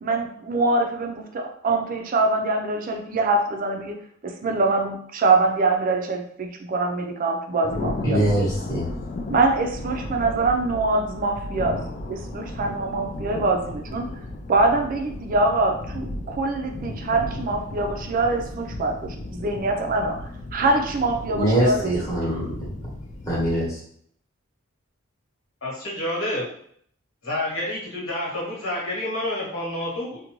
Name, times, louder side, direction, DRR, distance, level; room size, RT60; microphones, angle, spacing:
voice 1, 0.0-4.0 4.2-8.2 9.3-11.8 12.1-14.1 14.5-20.2 20.5-21.9, right 3 dB, 45° right, 4 dB, 0.4 m, -24 dB
Thunder, 7.6-23.7, left 2 dB, 35° left, 0.3 m, -35 dB
voice 2, 8.0-8.9 21.3-22.7 23.3-23.8, right 1 dB, 10° left, -8 dB, 1.0 m, -23 dB
voice 3, 25.6-26.5 27.2-30.2, left 1 dB, 80° left, -5 dB, 1.2 m, -28 dB
2.6 x 2.2 x 2.9 m, 0.65 s
head